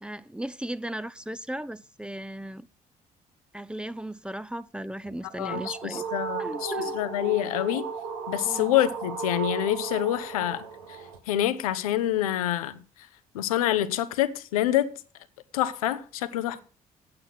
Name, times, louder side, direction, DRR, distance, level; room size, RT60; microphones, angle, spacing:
voice 1, 0.0-2.7 3.5-6.0 6.4-7.0 8.5-8.8 10.4-10.6, right 1 dB, 5° right, 0.6 m, -36 dB
sound 1, 5.1-11.2, right 5 dB, 75° right, 1.5 m, -35 dB
voice 2, 5.4-7.9 8.3-11.0 11.3-12.8 13.3-14.9 15.5-16.6, left 13 dB, 80° left, 0.6 m, -27 dB
8.7 x 8.6 x 6.0 m
figure-of-eight pair, 45°, 18 cm